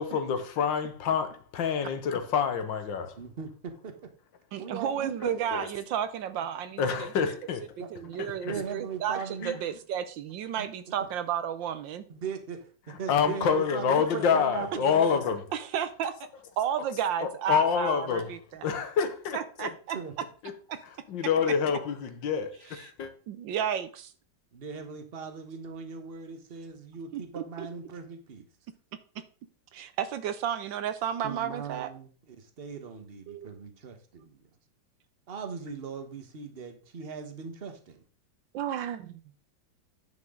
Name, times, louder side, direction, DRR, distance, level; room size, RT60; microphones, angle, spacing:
voice 1, 0.0-3.1 5.5-5.7 6.8-7.7 8.2-8.6 9.4-9.5 13.1-15.4 17.2-18.3 18.6-19.7 20.4-20.5 21.1-23.1, left 6 dB, 65° left, 1.7 m, -27 dB
voice 2, 3.2-3.9 4.6-5.4 7.8-8.2 8.4-9.6 10.6-10.7 12.1-12.7 13.0-15.3 19.9-20.1 24.5-28.5 31.2-34.4 35.3-38.0, right 6 dB, 35° right, 1.2 m, -39 dB
voice 3, 4.5-6.8 7.9-12.0 15.5-16.1 16.6-18.7 19.3-20.0 20.7-20.8 22.8-22.9 23.3-24.1 27.1-27.7 29.7-31.9 33.3-33.5 38.5-39.1, right 9 dB, 70° right, 1.3 m, -32 dB
10.0 x 6.0 x 3.7 m
omnidirectional pair, 2.3 m